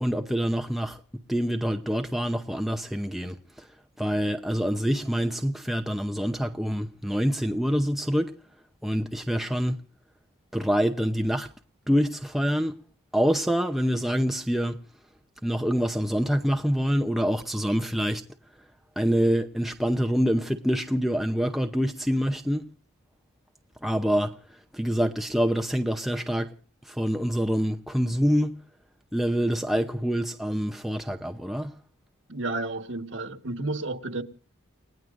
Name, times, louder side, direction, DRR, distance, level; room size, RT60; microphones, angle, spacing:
voice 1, 0.0-1.0 1.3-3.4 4.0-8.3 8.8-9.8 10.5-11.5 11.9-12.8 13.1-14.8 15.4-18.2 19.0-22.7 23.8-24.3 24.7-26.5 26.9-28.5 29.1-31.7, equal, ahead, 0.7 m, -26 dB
voice 2, 32.3-34.2, right 2 dB, 65° right, 1.5 m, -31 dB
30.0 x 18.0 x 2.6 m
head